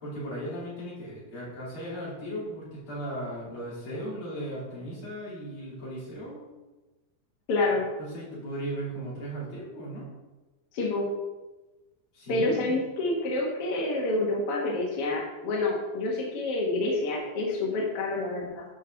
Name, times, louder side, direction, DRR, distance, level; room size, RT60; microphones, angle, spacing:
voice 1, 0.0-6.4 8.0-10.1 12.1-12.7, right 1 dB, 35° left, -7 dB, 3.9 m, -37 dB
voice 2, 7.5-7.9 10.7-11.1 12.3-18.6, left 2 dB, 55° left, -3 dB, 1.8 m, -28 dB
12.5 x 5.2 x 3.9 m, 1.1 s
omnidirectional pair, 4.1 m